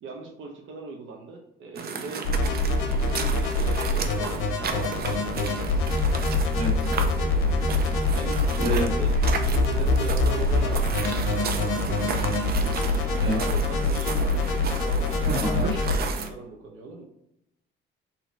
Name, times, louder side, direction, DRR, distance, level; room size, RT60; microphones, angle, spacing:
voice 1, 0.0-5.8 6.9-7.4 8.1-12.4 13.0-17.0, right 4 dB, 70° right, -1 dB, 0.8 m, -40 dB
sound 1, 1.8-16.3, right 5 dB, 50° right, 0.6 m, -34 dB
sound 2, 2.3-16.0, left 2 dB, 85° left, 0.7 m, -25 dB
voice 2, 8.6-8.9 13.2-13.4 15.2-15.8, right 1 dB, 25° right, -2 dB, 1.5 m, -27 dB
4.2 x 2.8 x 4.5 m, 0.78 s
cardioid pair, 125°, 21 cm